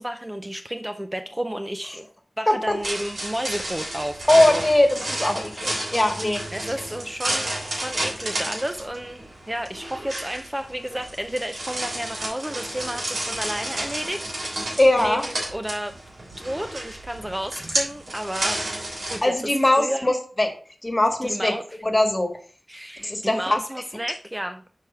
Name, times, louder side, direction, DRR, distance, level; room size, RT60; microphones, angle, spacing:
voice 1, 0.0-2.1 2.4-4.7 6.5-14.6 15.0-15.9 16.4-18.6 19.1-20.1 21.2-21.8 22.7-24.6, right 1 dB, 15° right, 7 dB, 0.4 m, -32 dB
sound 1, 2.7-19.2, right 1 dB, 85° right, 3.1 m, -31 dB
voice 2, 4.3-6.4 14.8-15.2 19.2-20.5 20.8-21.5 21.8-22.3 23.0-23.6, left 1 dB, 25° left, 5 dB, 1.6 m, -20 dB
6.6 x 4.9 x 4.4 m, 0.42 s
wide cardioid pair, 75°, 0 cm